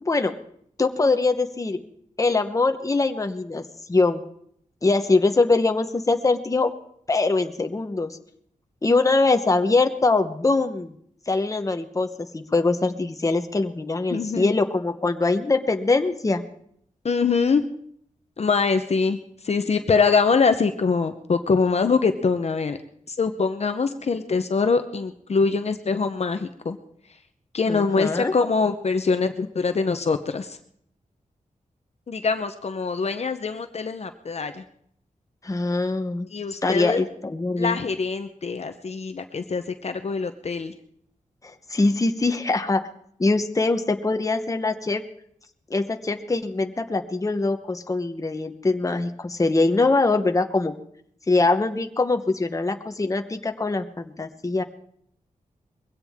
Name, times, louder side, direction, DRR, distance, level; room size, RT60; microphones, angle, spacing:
voice 1, 0.0-0.3 0.8-1.8 2.2-3.6 3.9-4.2 4.8-6.7 7.1-8.2 8.8-10.9 11.3-16.4 27.7-28.3 35.4-36.3 36.6-37.9 41.4-42.8 43.2-45.0 45.7-50.7 51.3-54.6, left 3 dB, 25° left, 6 dB, 1.0 m, -23 dB
voice 2, 14.1-14.5 17.0-17.6 18.4-19.2 19.4-22.8 23.1-26.8 27.5-30.6 32.1-34.6 36.3-37.0 37.6-40.7, left 4 dB, 50° left, 8 dB, 0.8 m, -23 dB
21.5 x 16.5 x 3.6 m, 0.67 s
wide cardioid pair, 125°, 14 cm